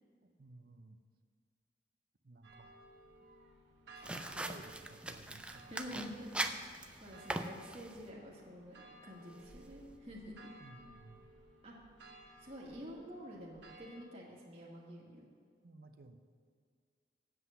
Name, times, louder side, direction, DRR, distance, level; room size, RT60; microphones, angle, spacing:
voice 1, 0.2-1.0 2.2-2.7 3.9-6.1 10.6-11.2 15.6-16.2, right 2 dB, 55° right, 7 dB, 0.7 m, -56 dB
sound 1, 2.4-14.0, right 1 dB, 80° right, 1.3 m, -58 dB
sound 2, 4.0-8.1, right 1 dB, 5° right, 0.3 m, -41 dB
voice 2, 5.7-6.6 7.0-8.7 9.0-10.5 11.6-11.8 12.4-15.2, equal, 30° right, -6 dB, 1.6 m, -48 dB
8.0 x 7.8 x 6.9 m, 2.1 s
head